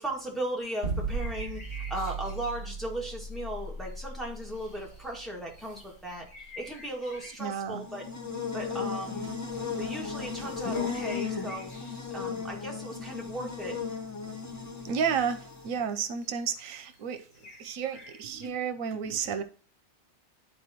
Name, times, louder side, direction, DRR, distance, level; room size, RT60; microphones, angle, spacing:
voice 1, 0.0-8.1 8.5-9.3 9.8-11.8 12.1-13.8, right 1 dB, ahead, -2 dB, 1.7 m, -37 dB
sound 1, 0.6-12.3 12.7-12.8 13.5-13.6 13.8-13.9 14.2-14.9 15.1-18.5, left 1 dB, 70° left, 2.8 m, -53 dB
sound 2, 0.8-7.0, right 4 dB, 55° right, 2.0 m, -36 dB
voice 2, 7.4-7.8 14.8-17.2 17.6-19.4, right 7 dB, 80° right, 10 dB, 1.0 m, -31 dB
Buzz, 7.7-15.8, left 5 dB, 15° left, 0.6 m, -35 dB
11.0 x 4.2 x 2.9 m, 0.39 s
omnidirectional pair, 1.4 m